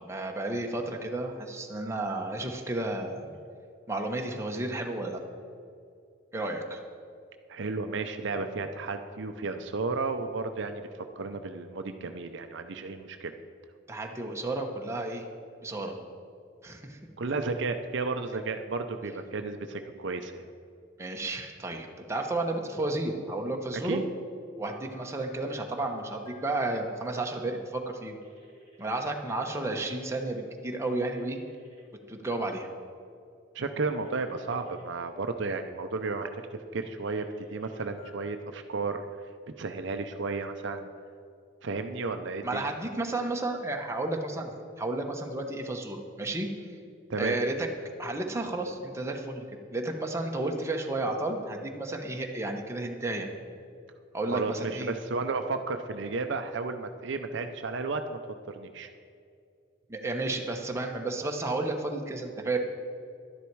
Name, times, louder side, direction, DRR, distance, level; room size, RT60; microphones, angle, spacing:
voice 1, 0.0-3.3 3.9-5.2 6.3-6.8 13.9-15.2 15.6-16.0 16.6-17.0 21.0-24.0 24.6-28.2 28.8-31.4 32.1-32.7 42.4-46.5 47.2-47.7 48.0-49.5 49.7-53.3 54.1-54.9 59.9-62.6, right 2 dB, 15° right, 2 dB, 1.0 m, -32 dB
voice 2, 7.5-10.8 11.2-13.3 17.2-20.4 23.8-24.0 33.5-36.3 36.7-39.0 39.6-40.9 41.6-42.6 47.1-47.3 54.3-58.2 58.5-58.9, right 3 dB, 65° right, 7 dB, 0.6 m, -33 dB
Telephone, 24.6-27.2 28.2-28.8 30.8-31.8 33.8-34.8 36.8-38.1, right 1 dB, 30° left, 2.2 m, -55 dB
11.5 x 10.0 x 4.7 m, 2.4 s
head